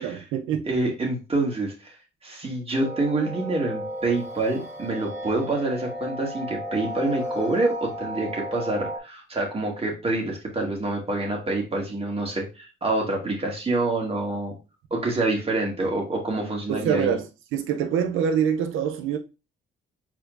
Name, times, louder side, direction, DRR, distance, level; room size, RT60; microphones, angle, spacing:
voice 1, 0.0-0.7 16.7-17.2 17.5-19.2, right 8 dB, 90° right, 0.6 m, -25 dB
voice 2, 0.6-2.0 2.2-14.5 14.9-17.2, right 2 dB, 30° right, 2.0 m, -27 dB
sound 1, 2.7-9.0, equal, 15° right, 1.8 m, -34 dB
4.6 x 4.3 x 2.5 m
cardioid pair, 90°, 20 cm